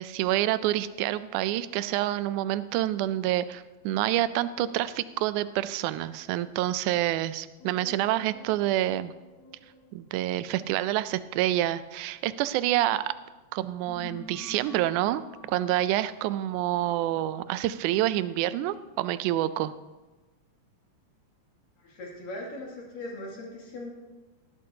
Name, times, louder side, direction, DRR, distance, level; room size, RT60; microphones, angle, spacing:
voice 1, 0.0-9.1 9.9-13.1 13.5-15.2 15.5-19.7, right 14 dB, 80° right, 14 dB, 1.9 m, -27 dB
sound 1, 7.6-12.9 13.5-18.4, left 3 dB, 60° left, 2.5 m, -51 dB
voice 2, 21.8-23.9, left 1 dB, 85° left, -3 dB, 4.2 m, -39 dB
18.0 x 11.0 x 2.8 m, 1.2 s
omnidirectional pair, 3.8 m